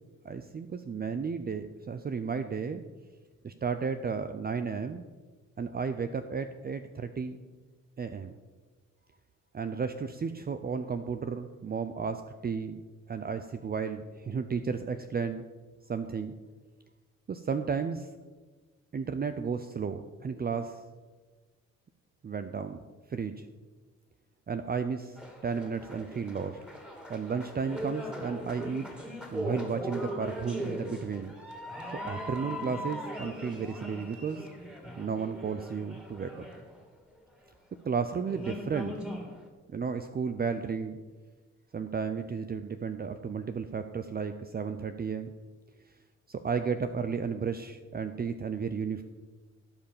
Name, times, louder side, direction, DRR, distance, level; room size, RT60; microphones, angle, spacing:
voice 1, 0.2-2.8 3.4-5.0 5.6-7.4 8.0-8.3 9.5-12.8 13.1-15.4 15.9-16.3 17.3-18.1 18.9-20.8 22.2-22.8 23.1-23.5 24.5-26.6 27.1-28.9 29.3-31.3 32.0-34.5 35.0-36.4 37.8-39.0 39.7-41.0 41.7-45.3 45.9-46.0 46.3-49.0, right 5 dB, 30° right, 9 dB, 0.7 m, -33 dB
sound 1, 25.2-37.1 37.8-37.9 38.2-39.4, equal, 5° right, 2.7 m, -40 dB
16.0 x 5.5 x 7.2 m, 1.3 s
cardioid pair, 90°, 30 cm